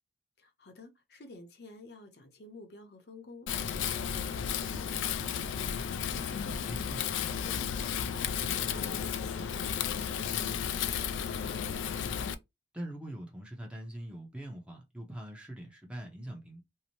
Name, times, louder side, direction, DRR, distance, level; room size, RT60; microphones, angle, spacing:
voice 1, 0.4-7.1 7.4-11.7, left 2 dB, 60° left, 0.7 m, -52 dB
Wind, 3.5-12.3, left 8 dB, 90° left, 0.3 m, -33 dB
voice 2, 6.6-7.0 12.7-16.6, right 1 dB, 5° right, 0.6 m, -42 dB
2.7 x 2.0 x 2.8 m
head